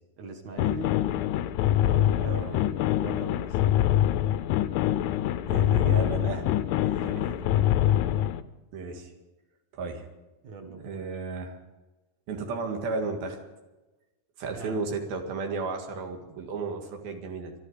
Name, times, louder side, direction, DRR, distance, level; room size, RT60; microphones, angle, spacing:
voice 1, 0.2-1.0 1.8-3.7 7.0-7.7 10.4-11.0 14.4-15.0, right 3 dB, 55° right, 3 dB, 2.5 m, -42 dB
sound 1, 0.6-8.4, left 12 dB, 85° left, 1.7 m, -25 dB
voice 2, 2.2-2.5 5.5-6.6 6.8-7.2 8.7-9.1 9.7-10.1 10.7-11.6 12.3-13.4 14.4-17.5, right 4 dB, 85° right, 3 dB, 3.8 m, -34 dB
24.0 x 12.0 x 5.0 m, 1.1 s
omnidirectional pair, 4.1 m